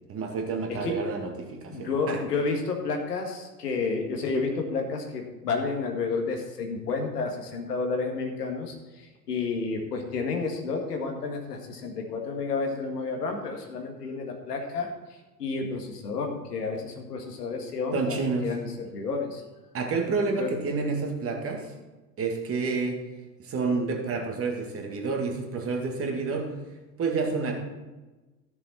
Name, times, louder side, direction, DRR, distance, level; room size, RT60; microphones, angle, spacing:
voice 1, 0.1-2.2 17.9-18.5 19.7-21.7 22.2-23.0 23.4-26.5 27.0-27.5, right 4 dB, 30° right, 2 dB, 2.1 m, -29 dB
voice 2, 0.7-1.1 1.7-14.9 15.4-19.4 20.4-20.5, left 4 dB, 70° left, 3 dB, 2.0 m, -31 dB
14.5 x 6.9 x 4.4 m, 1.2 s
figure-of-eight pair, 85°, 48 cm